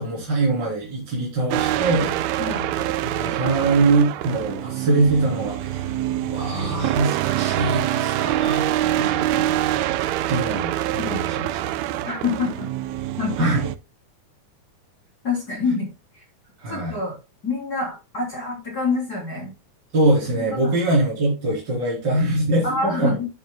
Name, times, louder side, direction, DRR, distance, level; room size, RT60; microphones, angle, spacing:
voice 1, 0.0-2.2 2.8-2.9 3.1-8.7 8.9-9.7 10.3-11.6 12.0-12.1 13.4-13.7 16.6-17.0 19.9-23.2, right 2 dB, 30° right, -7 dB, 3.9 m, -23 dB
sound 1, 1.5-13.8, right 13 dB, 85° right, 1.6 m, -25 dB
voice 2, 2.4-2.7 11.0-11.2 12.0-12.7 13.2-13.7 15.2-15.9 16.1-16.2 16.7-17.1 17.4-19.5 20.3-20.7 22.6-23.3, left 4 dB, 30° left, -3 dB, 3.3 m, -26 dB
10.5 x 9.2 x 2.2 m, 0.28 s
omnidirectional pair, 3.8 m